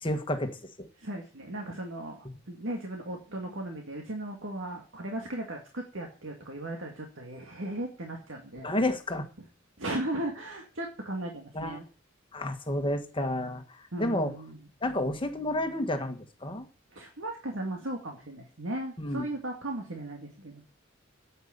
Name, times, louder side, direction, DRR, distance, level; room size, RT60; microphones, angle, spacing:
voice 1, 0.0-0.9 8.6-9.3 11.5-11.8 12.3-14.3 14.8-16.7 19.0-19.2, left 1 dB, 25° left, 7 dB, 1.5 m, -31 dB
voice 2, 1.0-8.7 9.8-11.8 13.9-14.6 16.9-20.6, right 1 dB, 75° right, 1 dB, 2.3 m, -37 dB
9.4 x 8.2 x 9.6 m, 0.38 s
head